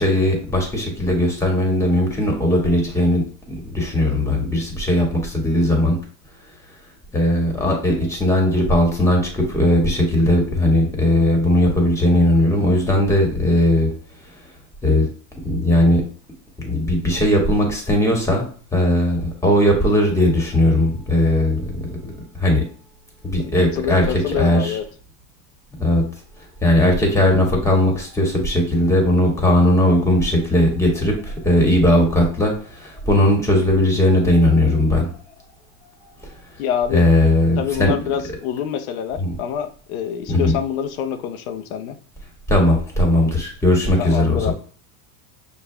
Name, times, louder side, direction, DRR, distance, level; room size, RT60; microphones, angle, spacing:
voice 1, 0.0-6.0 7.1-13.9 14.8-15.1 15.4-16.0 16.6-21.8 22.4-22.6 23.2-24.8 25.8-26.0 26.6-35.1 36.9-37.9 39.2-39.3 40.3-40.5 42.5-44.5, left 1 dB, 5° left, 1 dB, 1.6 m, -18 dB
voice 2, 23.6-24.8 36.6-37.1 37.6-42.0 44.0-44.5, left 8 dB, 90° left, 8 dB, 0.7 m, -26 dB
6.1 x 2.5 x 3.3 m, 0.44 s
supercardioid pair, 120°, 41 cm